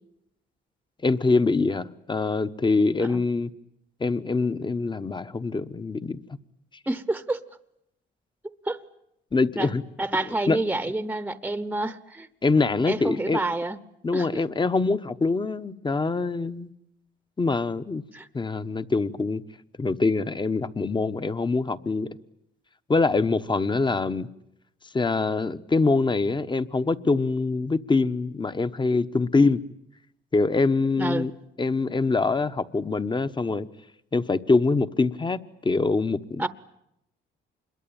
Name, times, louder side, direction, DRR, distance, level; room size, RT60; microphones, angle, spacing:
voice 1, 1.0-3.5 4.0-6.2 9.3-9.8 10.2-10.6 12.4-13.4 14.0-16.7 17.4-18.0 18.3-19.4 19.8-22.1 22.9-24.3 24.9-29.6 30.3-31.3 31.6-33.7 34.1-36.4, left 3 dB, 25° left, 1.1 m, -24 dB
voice 2, 6.9-7.4 8.7-8.8 9.6-9.7 10.0-12.3 12.9-13.8 14.1-14.4 18.1-18.3 31.0-31.3 36.4-36.5, right 2 dB, 10° right, 1.0 m, -28 dB
26.5 x 22.0 x 8.8 m
cardioid pair, 90°, 20 cm